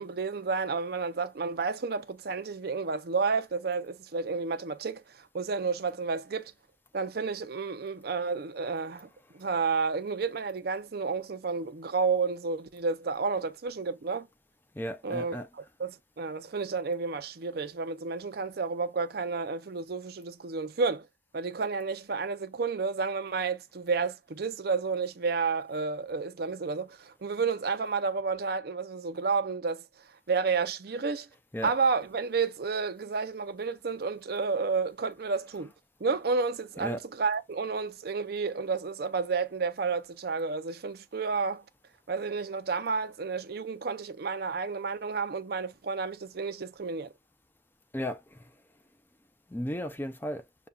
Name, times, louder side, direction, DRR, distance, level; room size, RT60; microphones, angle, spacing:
voice 1, 0.0-6.5 6.9-9.1 9.3-14.3 15.0-21.1 21.3-29.8 30.3-31.3 31.6-35.7 36.0-41.6 42.1-47.1, right 4 dB, 55° right, 0.5 m, -31 dB
voice 2, 14.8-15.5 31.5-31.7 36.8-37.0 47.9-48.5 49.5-50.4, equal, 10° left, 0.4 m, -34 dB
6.8 x 2.3 x 2.3 m
head